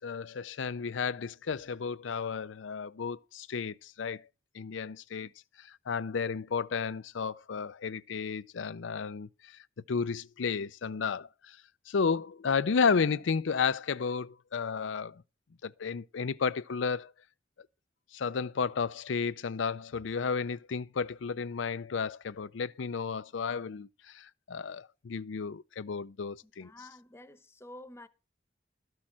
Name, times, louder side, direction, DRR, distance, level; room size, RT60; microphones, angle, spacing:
voice 1, 0.0-4.2 4.5-5.3 5.6-9.6 9.9-11.6 11.9-15.2 15.6-17.1 18.1-26.7, left 5 dB, 80° left, 0.5 m, -32 dB
voice 2, 26.4-28.1, left 1 dB, 15° left, 1.0 m, -50 dB
13.0 x 6.4 x 7.3 m
head